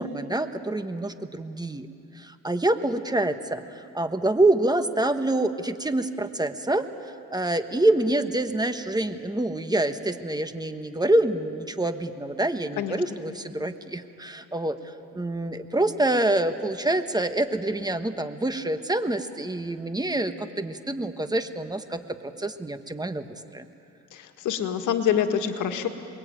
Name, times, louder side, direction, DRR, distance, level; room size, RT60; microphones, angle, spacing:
voice 1, 0.0-1.9 2.1-22.0 22.4-23.2 23.5-23.6, right 1 dB, 15° right, 9 dB, 1.3 m, -26 dB
voice 2, 24.1-25.9, left 8 dB, 85° left, 6 dB, 1.8 m, -26 dB
28.5 x 21.5 x 9.0 m, 2.6 s
cardioid pair, 90°, 30 cm